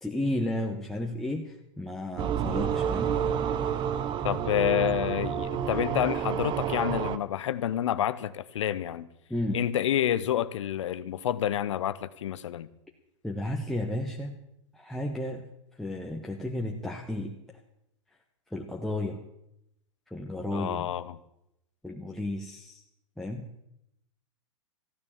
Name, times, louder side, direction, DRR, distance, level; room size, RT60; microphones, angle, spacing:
voice 1, 0.0-3.1 9.3-9.6 13.2-14.4 14.7-15.4 15.8-17.4 18.5-19.2 20.1-20.9 21.8-22.8 23.2-23.4, left 1 dB, ahead, -1 dB, 1.3 m, -33 dB
sound 1, 2.2-7.2, right 8 dB, 30° right, 0.9 m, -29 dB
voice 2, 4.2-9.1 9.5-12.7 20.5-21.2, left 11 dB, 70° left, 15 dB, 0.8 m, -28 dB
15.0 x 9.6 x 7.2 m, 0.82 s
hypercardioid pair, 110°, 16 cm